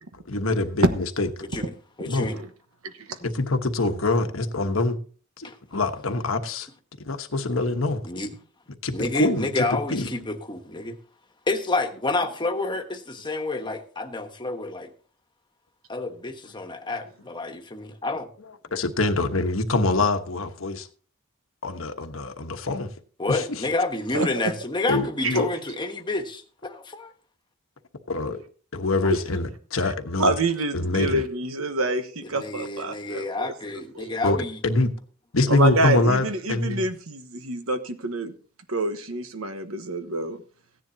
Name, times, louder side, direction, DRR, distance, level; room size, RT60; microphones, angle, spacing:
voice 1, 0.3-1.3 2.1-2.3 3.2-5.0 5.4-6.7 7.0-8.0 8.8-10.1 18.7-20.9 21.6-22.9 23.3-23.4 24.9-25.5 28.1-28.4 28.7-30.4 30.7-31.2 34.2-34.4 34.6-34.9 35.3-36.8, left 2 dB, 75° left, 1.2 m, -24 dB
voice 2, 2.0-2.4 5.4-5.6 8.0-8.3 8.9-11.0 11.5-14.9 15.9-18.3 23.2-27.1 32.3-34.6, left 2 dB, 20° left, 1.3 m, -29 dB
voice 3, 30.2-33.5 33.9-34.2 35.5-38.3 38.7-40.4, right 2 dB, 85° right, 1.2 m, -27 dB
15.5 x 10.5 x 2.8 m
head